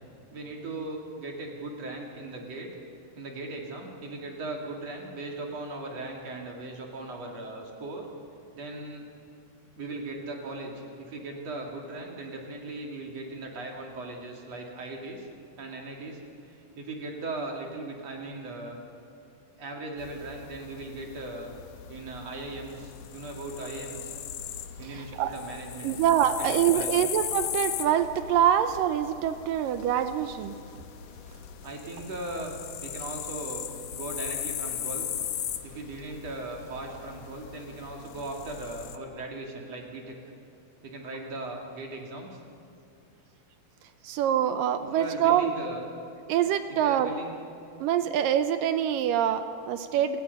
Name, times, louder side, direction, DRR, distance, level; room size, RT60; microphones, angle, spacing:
voice 1, 0.3-2.7 3.2-8.1 8.5-9.1 9.8-15.3 15.6-16.2 16.5-18.8 19.6-21.5 21.9-24.1 24.8-27.1 31.6-32.5 32.8-35.1 35.6-40.2 40.8-42.4 44.8-45.9 46.7-47.4, right 2 dB, 45° right, 0 dB, 3.2 m, -38 dB
sound 1, 20.0-39.0, left 9 dB, 75° left, 1.5 m, -38 dB
voice 2, 25.0-25.3 25.8-30.6 44.0-45.5 46.3-47.1 47.8-50.2, right 10 dB, 80° right, 10 dB, 2.1 m, -25 dB
28.0 x 18.5 x 5.4 m, 2.7 s
omnidirectional pair, 4.4 m